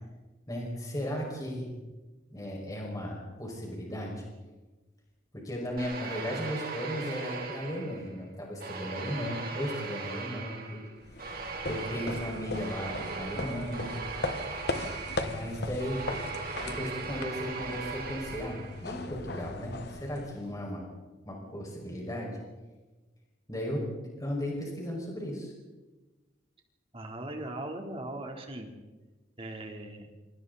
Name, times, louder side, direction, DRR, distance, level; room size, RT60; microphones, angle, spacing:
voice 1, 0.5-1.7 2.3-4.2 5.3-10.8 11.7-13.9 15.3-16.0 16.6-20.8 21.2-22.3 23.5-25.5, equal, 20° left, -2 dB, 5.7 m, -36 dB
sound 1, 5.8-8.2 8.6-18.9, right 4 dB, 50° right, 3.4 m, -39 dB
sound 2, 11.0-20.7, left 2 dB, 60° left, 1.4 m, -38 dB
voice 2, 26.9-28.7 29.4-30.1, right 1 dB, 30° right, 2 dB, 3.5 m, -39 dB
28.0 x 27.5 x 4.1 m, 1.2 s
head